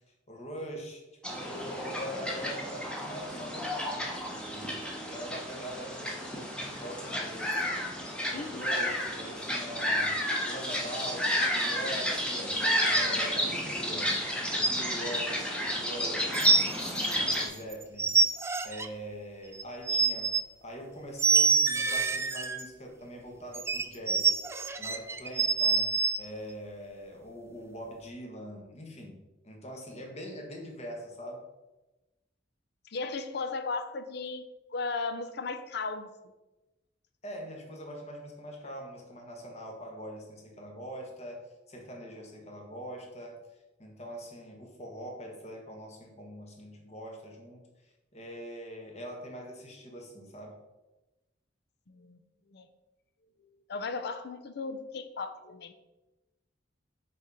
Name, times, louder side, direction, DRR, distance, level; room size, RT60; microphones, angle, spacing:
voice 1, 0.3-10.2 10.4-14.2 14.5-15.5 15.8-18.4 18.6-20.3 20.6-24.4 24.8-31.4 37.2-43.4 43.8-50.6, equal, 35° left, 1 dB, 1.4 m, -43 dB
sound 1, 1.2-17.5, equal, 5° left, 1.1 m, -31 dB
voice 2, 8.3-8.6 32.8-34.4 34.7-36.1 51.9-52.2 52.5-52.7 53.7-55.7, left 4 dB, 65° left, 10 dB, 0.6 m, -36 dB
sound 2, 16.3-17.4 17.7-18.9 19.6-20.4 21.2-22.6 23.5-26.2, right 4 dB, 15° right, 0.4 m, -26 dB
6.4 x 4.3 x 4.9 m, 1.1 s
head